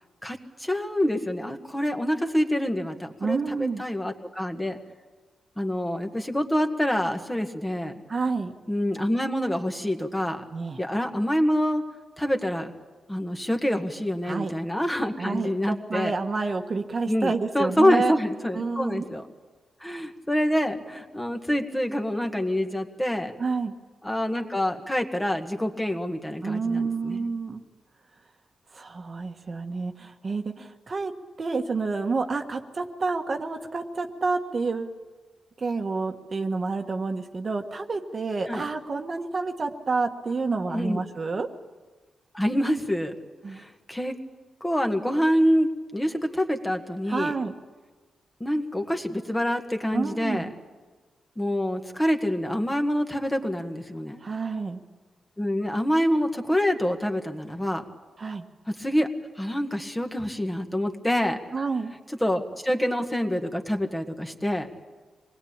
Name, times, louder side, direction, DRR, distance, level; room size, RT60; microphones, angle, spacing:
voice 1, 0.2-4.8 5.6-7.9 8.7-10.4 10.8-11.8 12.2-12.7 13.1-16.1 17.1-19.3 19.8-23.3 24.0-27.3 38.5-38.6 40.7-41.0 42.3-43.1 43.5-44.2 44.6-47.3 48.4-50.5 51.4-54.2 55.4-57.8 58.7-59.1 59.4-61.4 62.2-64.7, equal, 10° left, 5 dB, 1.8 m, -26 dB
voice 2, 3.2-3.8 8.1-8.5 10.5-10.8 14.2-14.5 15.2-18.2 18.5-19.1 23.4-23.7 26.4-27.6 28.7-31.1 31.4-35.0 35.6-41.5 43.4-43.6 47.1-47.5 49.9-50.5 54.2-54.8 58.2-58.5 61.5-61.9, right 4 dB, 40° right, 5 dB, 1.5 m, -29 dB
26.0 x 20.0 x 8.8 m, 1.3 s
wide cardioid pair, 120°, 0 cm